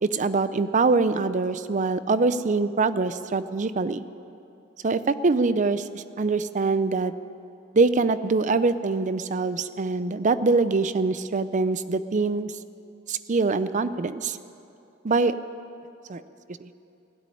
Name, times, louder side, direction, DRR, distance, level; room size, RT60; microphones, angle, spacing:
voice 1, 0.0-4.0 4.8-7.1 7.7-12.5 13.1-14.4 15.0-15.3 16.1-16.2 16.6-16.7, right 3 dB, 40° right, 13 dB, 0.5 m, -24 dB
15.5 x 8.5 x 9.9 m, 2.7 s
head